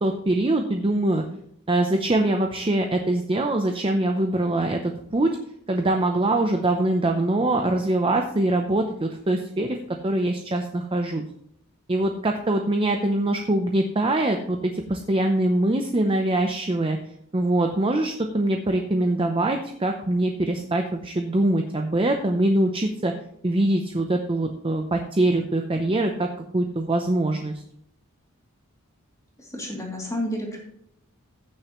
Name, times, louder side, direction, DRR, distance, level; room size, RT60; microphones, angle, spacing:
voice 1, 0.0-1.2 1.7-4.8 5.1-5.3 5.7-9.8 10.0-11.2 11.9-17.0 17.3-23.1 23.4-26.3 26.5-27.5, right 1 dB, 25° right, 4 dB, 0.6 m, -23 dB
voice 2, 29.4-30.6, left 1 dB, 15° left, -1 dB, 2.7 m, -30 dB
15.5 x 6.6 x 3.1 m, 0.72 s
head